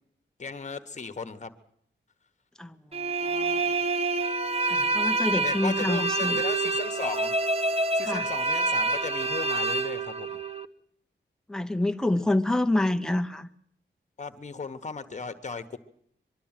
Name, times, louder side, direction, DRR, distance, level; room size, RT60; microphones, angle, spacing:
voice 1, 0.4-1.5 5.4-7.3 7.7-10.4 14.2-15.8, left 4 dB, 40° left, 10 dB, 1.2 m, -36 dB
voice 2, 2.6-3.8 4.6-6.4 8.0-8.3 11.5-13.5, left 1 dB, 5° left, 6 dB, 0.8 m, -28 dB
sound 1, 2.9-10.7, right 3 dB, 30° right, 0.8 m, -27 dB
23.5 x 12.5 x 9.0 m, 0.68 s
wide cardioid pair, 170°, 20 cm